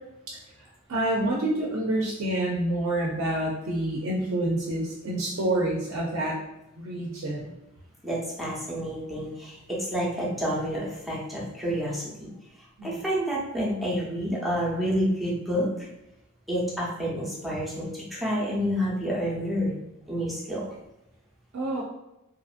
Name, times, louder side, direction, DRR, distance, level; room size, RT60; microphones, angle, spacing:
voice 1, 0.9-6.4 6.8-7.5 12.8-13.0 21.5-21.8, right 1 dB, 65° right, -2 dB, 0.5 m, -27 dB
voice 2, 8.0-12.3 12.8-15.9 16.5-19.8 20.1-20.7, equal, ahead, -6 dB, 0.7 m, -29 dB
2.8 x 2.5 x 2.4 m, 0.93 s
head